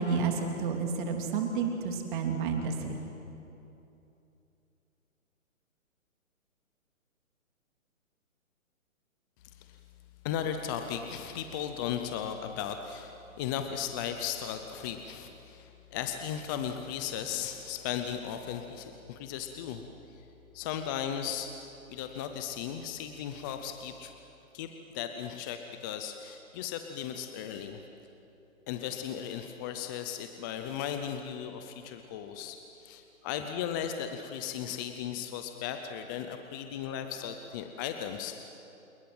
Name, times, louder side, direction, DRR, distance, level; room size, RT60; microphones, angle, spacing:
voice 1, 0.0-3.0, right 5 dB, 35° right, 3 dB, 3.4 m, -30 dB
voice 2, 10.2-19.8 20.5-21.5 21.9-24.1 24.5-24.7 24.9-27.8 28.7-38.5, left 9 dB, 15° left, 6 dB, 0.6 m, -36 dB
28.0 x 20.5 x 7.9 m, 2.8 s
hypercardioid pair, 145°, 41 cm